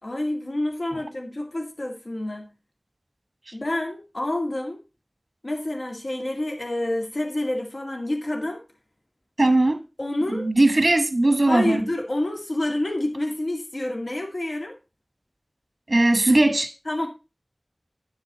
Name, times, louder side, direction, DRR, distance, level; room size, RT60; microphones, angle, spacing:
voice 1, 0.0-2.5 3.5-4.8 5.4-8.6 10.0-10.5 11.5-14.8 16.9-17.1, left 1 dB, 80° left, 2.1 m, -28 dB
voice 2, 9.4-9.8 10.3-11.8 15.9-16.7, right 2 dB, 65° right, 1.3 m, -19 dB
9.6 x 8.3 x 4.0 m
wide cardioid pair, 40°, 0 cm